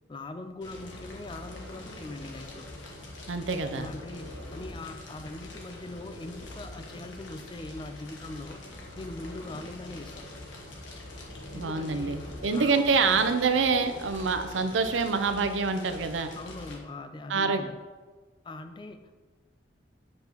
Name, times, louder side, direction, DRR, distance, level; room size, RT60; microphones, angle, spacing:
voice 1, 0.1-2.7 3.7-8.6 9.0-10.3 11.5-12.2 12.5-13.2 16.4-17.8 18.4-19.1, left 2 dB, 25° left, 8 dB, 0.4 m, -41 dB
Fire, 0.6-16.8, left 1 dB, 85° left, 1.3 m, -44 dB
voice 2, 3.3-3.9 11.5-16.3 17.3-17.6, right 4 dB, 90° right, 8 dB, 0.6 m, -26 dB
7.5 x 5.4 x 3.0 m, 1.3 s
head